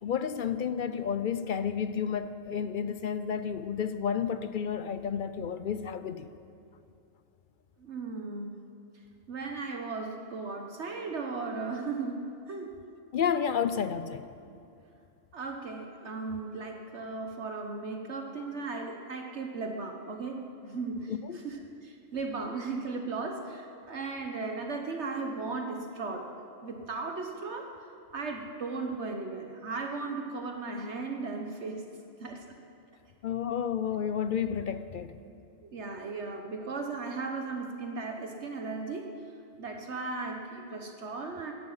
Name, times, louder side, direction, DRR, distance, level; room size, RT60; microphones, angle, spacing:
voice 1, 0.0-6.3 13.1-14.2 21.1-21.4 33.2-35.1, left 7 dB, 60° left, 12 dB, 0.5 m, -31 dB
voice 2, 7.8-8.6 9.3-12.7 15.3-21.1 21.4-27.7 28.1-31.8 32.2-32.6 34.0-34.1 35.6-39.1 39.6-41.5, right 3 dB, 60° right, 3 dB, 1.3 m, -36 dB
17.0 x 12.5 x 5.6 m, 2.6 s
omnidirectional pair, 1.3 m